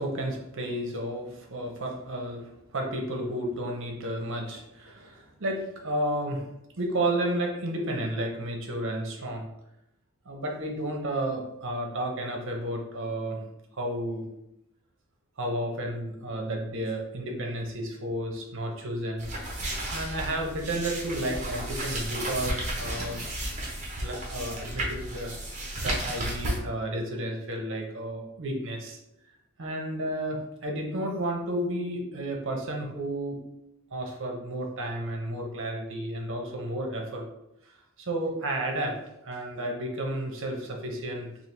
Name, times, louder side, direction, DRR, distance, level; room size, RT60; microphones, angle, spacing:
voice 1, 0.0-6.5 6.8-9.5 10.2-13.4 13.7-14.3 15.4-19.3 19.9-23.2 24.0-25.3 25.8-29.0 29.6-33.4 33.9-37.3 37.6-37.7 38.0-39.0 39.2-41.3, right 1 dB, 60° right, 1 dB, 0.8 m, -32 dB
sound 1, 19.2-26.6, right 1 dB, 35° right, 0.9 m, -33 dB
4.4 x 2.5 x 3.3 m, 0.83 s
head